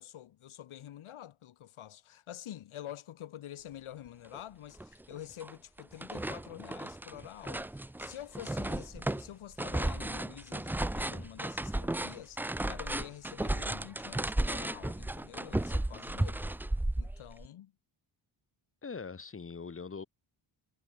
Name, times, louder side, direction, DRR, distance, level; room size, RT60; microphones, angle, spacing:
voice 1, 0.0-16.5 17.0-17.7, left 12 dB, 80° left, 4.1 m, -47 dB
sound 1, 4.3-4.4 4.8-5.5 5.8-17.5, right 1 dB, 5° right, 0.4 m, -34 dB
voice 2, 18.8-20.0, left 5 dB, 25° left, 5.3 m, -42 dB
wide cardioid pair, 175°, 48 cm